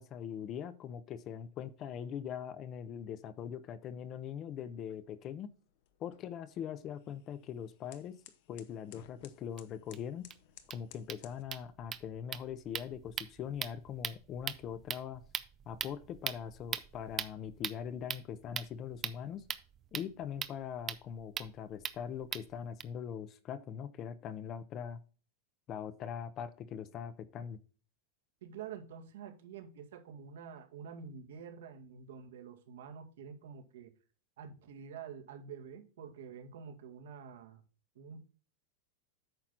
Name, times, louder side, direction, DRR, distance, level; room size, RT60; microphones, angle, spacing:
voice 1, 0.0-5.5 6.0-8.2 8.5-10.3 10.7-15.2 15.7-19.4 19.9-25.0 25.7-27.6, left 8 dB, 25° left, 0.7 m, -42 dB
sound 1, 4.6-11.4, left 11 dB, 50° left, 1.0 m, -60 dB
sound 2, 9.6-9.7 9.9-10.0 10.3-10.4 10.6-22.8, right 9 dB, 20° right, 0.5 m, -42 dB
voice 2, 28.4-33.9 34.4-37.6 38.0-38.2, right 7 dB, 80° right, 1.9 m, -48 dB
8.9 x 5.9 x 3.9 m
supercardioid pair, 170°, 0 cm